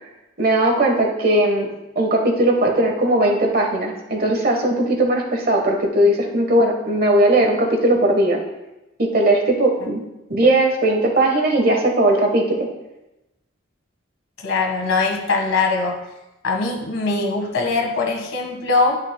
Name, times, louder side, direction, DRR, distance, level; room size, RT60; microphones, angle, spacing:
voice 1, 0.4-1.7 1.9-8.4 9.0-10.0 10.3-12.7, right 1 dB, 45° right, 2 dB, 1.3 m, -18 dB
voice 2, 14.4-16.0 16.4-19.0, left 3 dB, 85° left, 1 dB, 1.6 m, -21 dB
11.0 x 6.4 x 2.2 m, 0.98 s
head